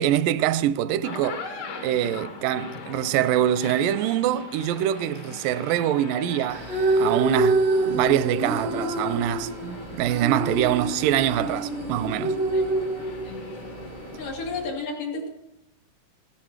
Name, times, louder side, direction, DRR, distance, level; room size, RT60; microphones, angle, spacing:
voice 1, 0.0-1.4 1.8-6.7 7.0-12.4, right 11 dB, 85° right, 2.2 m, -24 dB
sound 1, 0.9-14.2, left 3 dB, 55° left, 2.0 m, -41 dB
sound 2, 6.5-14.7, right 2 dB, 65° right, 0.6 m, -27 dB
voice 2, 14.2-15.3, left 3 dB, 75° left, 3.8 m, -32 dB
15.0 x 11.0 x 4.6 m
omnidirectional pair, 3.8 m